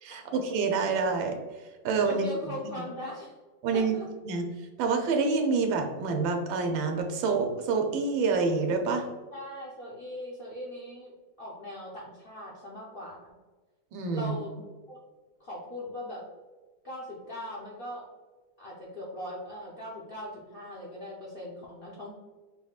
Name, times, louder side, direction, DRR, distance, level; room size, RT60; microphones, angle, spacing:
voice 1, 0.0-1.4 1.8-2.3 2.8-2.9 3.6-3.9 4.2-9.1 13.9-14.3, right 4 dB, 90° right, 3 dB, 1.4 m, -27 dB
voice 2, 2.0-3.3 3.7-4.1 9.3-13.3 14.1-14.5 14.9-15.0 15.4-16.2 16.8-18.1 18.6-22.1, left 1 dB, 80° left, -5 dB, 0.5 m, -40 dB
4.7 x 3.5 x 2.3 m, 1.3 s
omnidirectional pair, 2.1 m